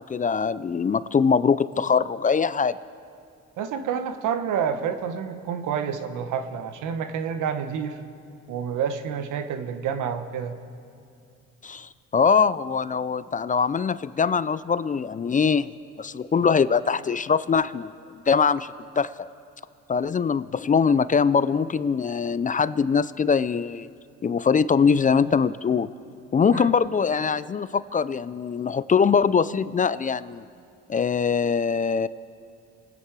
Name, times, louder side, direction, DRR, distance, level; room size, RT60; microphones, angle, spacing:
voice 1, 0.0-2.8 11.6-15.7 16.0-17.9 18.3-19.3 19.9-23.9 24.2-25.9 26.3-30.4 30.9-32.1, left 6 dB, 25° left, 16 dB, 0.4 m, -22 dB
voice 2, 3.6-8.0 8.5-10.6 26.5-26.7, right 7 dB, 85° right, 9 dB, 1.1 m, -29 dB
28.0 x 9.8 x 4.7 m, 2.5 s
cardioid pair, 90°, 30 cm